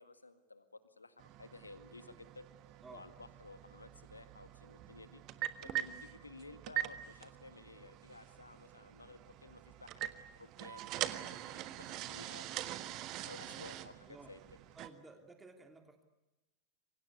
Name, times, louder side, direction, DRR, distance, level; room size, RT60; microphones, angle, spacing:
voice 1, 0.0-2.5 2.9-5.2 5.6-10.1 10.4-14.4, left 3 dB, 80° left, 10 dB, 2.0 m, -55 dB
sound 1, 1.2-14.9, right 14 dB, 40° right, 1.5 m, -44 dB
voice 2, 14.7-16.0, right 3 dB, 10° right, 5 dB, 2.9 m, -55 dB
27.5 x 24.0 x 8.4 m, 0.99 s
figure-of-eight pair, 90°, 0 cm